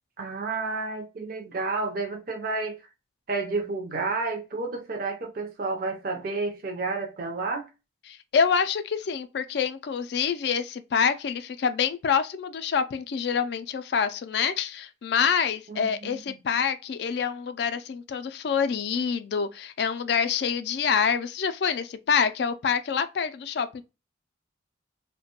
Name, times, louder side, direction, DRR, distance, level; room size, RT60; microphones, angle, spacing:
voice 1, 0.2-2.8 3.3-7.7 15.7-16.4, right 3 dB, 50° right, 0.5 m, -31 dB
voice 2, 8.1-23.8, left 6 dB, 60° left, 0.3 m, -26 dB
2.9 x 2.1 x 2.8 m
head